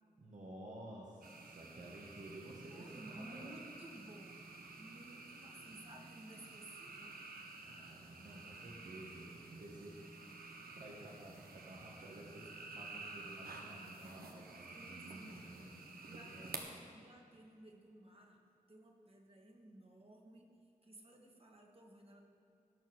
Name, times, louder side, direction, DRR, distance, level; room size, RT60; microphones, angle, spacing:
voice 1, 0.2-3.6 7.6-10.0 10.7-16.6, right 1 dB, 55° right, -3 dB, 1.8 m, -53 dB
sound 1, 1.2-16.6, right 3 dB, 85° right, 1.3 m, -52 dB
voice 2, 2.7-7.2 12.0-12.1 14.7-15.5 16.0-16.7 16.9-18.4 18.7-20.6 20.8-22.2, right 1 dB, 40° right, 1 dB, 2.0 m, -56 dB
17.5 x 7.0 x 6.3 m, 2.5 s
wide cardioid pair, 90°, 15 cm